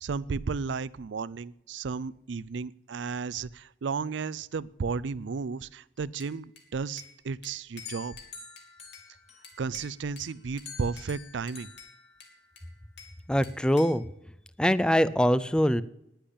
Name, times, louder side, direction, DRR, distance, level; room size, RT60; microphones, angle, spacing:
voice 1, 0.0-8.1 9.6-11.7, right 5 dB, 70° right, 20 dB, 0.4 m, -33 dB
Bell / Glass, 6.2-7.2 7.4-9.1 9.4-10.3 10.6-11.1 11.5-13.2 13.4-14.1, left 6 dB, 65° left, 2.9 m, -50 dB
sound 1, 7.9-9.8 10.2-12.7, left 6 dB, 35° left, 2.4 m, -48 dB
voice 2, 13.3-14.0 14.6-15.8, equal, 5° left, 17 dB, 0.4 m, -23 dB
10.5 x 10.5 x 8.6 m, 0.79 s
head